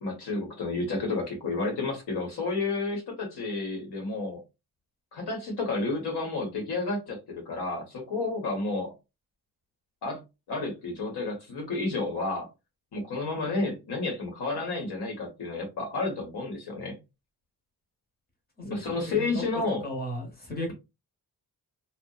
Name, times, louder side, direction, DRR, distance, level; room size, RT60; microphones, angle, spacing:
voice 1, 0.0-4.4 5.1-8.9 10.0-10.2 10.5-12.5 12.9-17.0 18.6-19.8, left 3 dB, 75° left, 1.0 m, -31 dB
voice 2, 19.1-19.4 19.8-20.7, left 1 dB, 25° left, 0.8 m, -35 dB
2.7 x 2.0 x 2.2 m
wide cardioid pair, 170°, 39 cm